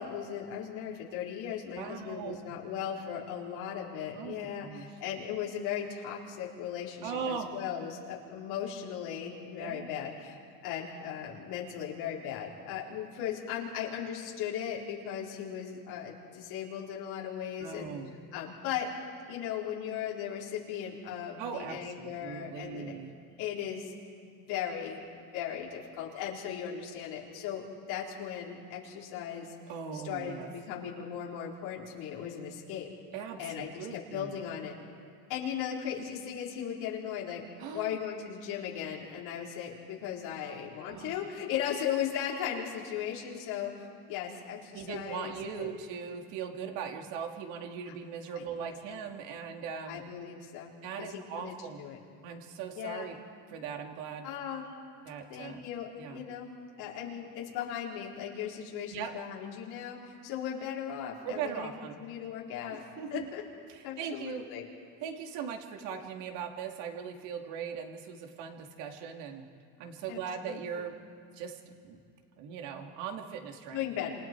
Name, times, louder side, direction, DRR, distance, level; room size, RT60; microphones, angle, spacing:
voice 1, 0.0-10.4 10.6-17.9 18.3-18.9 19.3-22.9 23.4-23.9 24.2-29.5 29.9-32.9 33.4-34.7 35.3-37.4 37.7-45.8 48.4-49.0 49.9-50.7 51.0-52.0 52.8-53.1 54.2-54.6 55.3-56.5 56.8-61.7 62.0-62.8 63.1-63.4 63.8-64.7 70.1-70.9 73.7-74.1, left 9 dB, 60° left, -4 dB, 4.6 m, -37 dB
voice 2, 1.7-2.5 4.1-4.9 7.0-7.5 9.6-9.9 17.6-18.1 21.4-23.1 29.7-30.5 33.1-34.3 37.6-38.0 40.9-41.2 44.7-50.0 50.8-51.8 52.2-53.2 53.5-54.3 55.0-55.6 56.0-56.2 58.9-59.1 61.2-62.0 62.7-63.3 63.7-64.4 65.0-69.5 69.8-70.9 71.3-72.0 72.4-73.9, right 7 dB, 70° right, 3 dB, 2.7 m, -39 dB
29.0 x 27.5 x 4.7 m, 2.2 s
cardioid pair, 155°, 44 cm